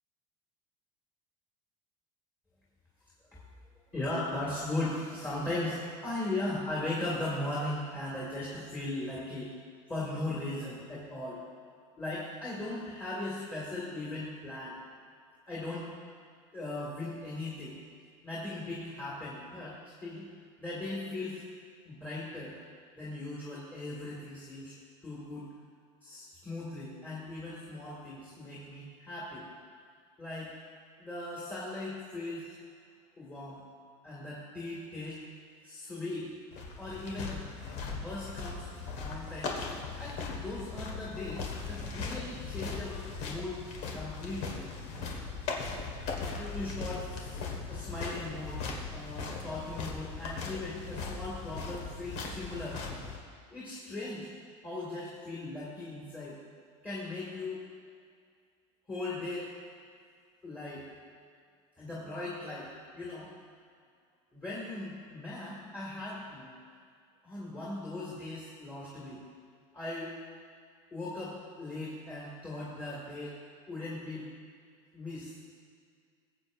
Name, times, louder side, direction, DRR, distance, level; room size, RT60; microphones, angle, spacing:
voice 1, 3.9-9.5 9.9-11.4 12.0-14.8 15.5-15.9 16.5-17.8 18.2-20.3 20.6-21.4 21.8-22.6 23.0-24.7 25.0-25.5 26.0-29.5 30.2-30.5 31.0-32.6 33.2-33.7 34.0-35.2 35.6-36.3 36.8-37.5 37.9-38.7 39.0-39.5 40.0-43.6 43.9-44.6 46.3-47.4 47.7-48.6 48.9-52.8 53.5-54.3 54.6-56.4 56.8-57.6 58.9-59.5 60.4-60.9 61.8-63.3 64.3-66.6 67.2-69.2 69.7-70.1 70.9-73.4 73.7-74.3 74.9-75.4, left 2 dB, 10° left, -8 dB, 2.2 m, -38 dB
sound 1, 36.5-53.2, left 4 dB, 65° left, 1.9 m, -39 dB
20.0 x 7.9 x 2.7 m, 2.2 s
supercardioid pair, 150°, 15 cm